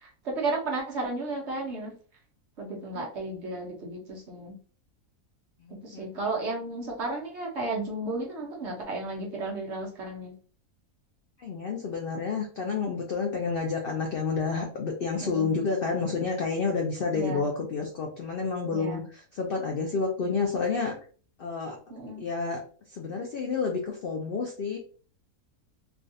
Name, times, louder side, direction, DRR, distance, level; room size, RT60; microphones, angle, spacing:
voice 1, 0.2-1.9 2.6-4.5 5.8-10.3 15.2-15.5 17.1-17.4 18.6-19.0 21.9-22.3, right 2 dB, 55° right, -1 dB, 1.0 m, -33 dB
voice 2, 5.6-6.4 11.4-20.9 21.4-21.8 22.2-22.6 22.9-24.8, left 4 dB, 85° left, 1 dB, 0.5 m, -30 dB
3.4 x 2.3 x 2.6 m, 0.41 s
omnidirectional pair, 1.6 m